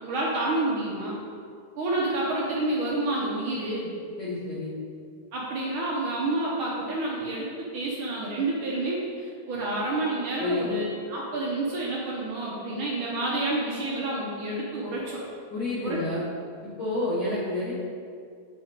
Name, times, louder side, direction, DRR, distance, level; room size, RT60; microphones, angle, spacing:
voice 1, 0.0-1.2 1.8-3.9 5.3-7.5 7.7-15.2 15.8-16.0, right 2 dB, 80° right, -5 dB, 1.1 m, -29 dB
voice 2, 4.2-4.7 10.4-10.6 15.5-16.2 16.6-17.7, left 2 dB, 45° left, -8 dB, 1.6 m, -29 dB
6.4 x 4.2 x 5.1 m, 2.3 s
omnidirectional pair, 3.5 m